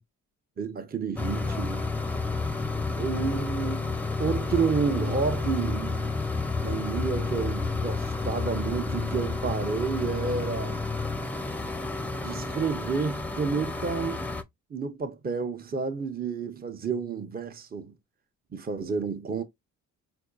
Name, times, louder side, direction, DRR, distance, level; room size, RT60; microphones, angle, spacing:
voice 1, 0.6-1.8 3.0-6.1 6.6-10.9 12.1-14.2 14.7-17.9 18.5-19.4, right 5 dB, 30° right, 0.8 m, -30 dB
sound 1, 1.2-14.4, left 3 dB, 5° left, 0.6 m, -30 dB
4.4 x 2.6 x 2.4 m
supercardioid pair, 70°, 32 cm